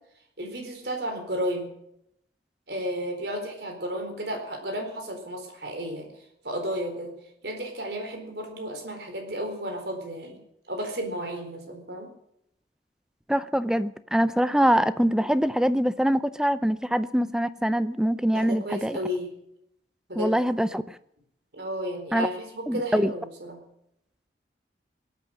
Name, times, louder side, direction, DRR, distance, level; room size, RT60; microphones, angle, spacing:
voice 1, 0.4-1.7 2.7-6.1 6.4-7.1 7.4-10.4 10.7-12.1 18.3-19.3 20.1-20.3 21.5-23.6, equal, 65° right, 3 dB, 4.3 m, -33 dB
voice 2, 13.3-19.0 20.2-21.0 22.1-22.3 22.7-23.1, equal, 5° right, 14 dB, 0.6 m, -24 dB
22.0 x 8.8 x 6.4 m, 0.76 s
head